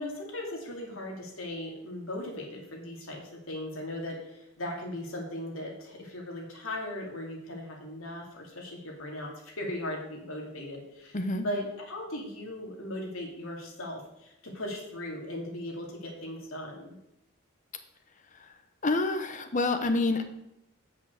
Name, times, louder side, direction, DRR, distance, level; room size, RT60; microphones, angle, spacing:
voice 1, 0.0-17.0, left 1 dB, 85° left, 0 dB, 2.5 m, -38 dB
voice 2, 11.1-11.4 18.3-18.5 18.8-20.2, left 2 dB, 40° left, 8 dB, 0.9 m, -28 dB
8.8 x 5.9 x 6.5 m, 0.84 s
head